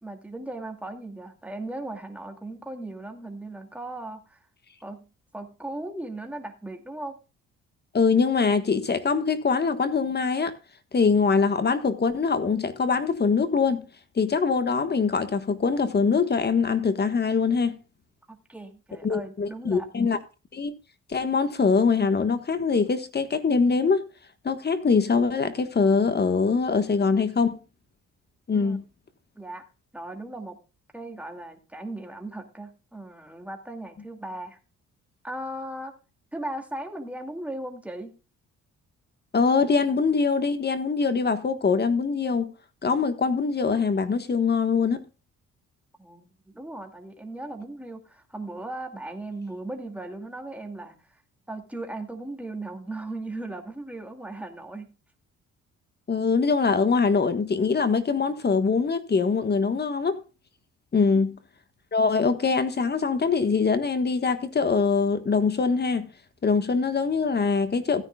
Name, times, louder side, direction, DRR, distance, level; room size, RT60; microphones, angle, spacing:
voice 1, 0.0-4.4 4.8-5.1 5.3-7.2 18.3-19.9 28.5-28.8 29.4-29.7 29.9-30.6 30.9-34.6 35.2-35.9 36.3-38.1 46.0-51.2 51.5-54.9, right 2 dB, 5° right, 2.4 m, -37 dB
voice 2, 7.9-10.5 10.9-13.8 14.2-17.7 19.0-20.2 20.5-20.7 21.1-24.0 24.4-27.6 28.5-28.8 39.3-42.5 42.8-45.0 56.1-60.2 60.9-61.4 61.9-66.1 66.4-68.0, left 5 dB, 35° left, 1.4 m, -23 dB
16.0 x 9.9 x 2.3 m
cardioid pair, 90°, 30 cm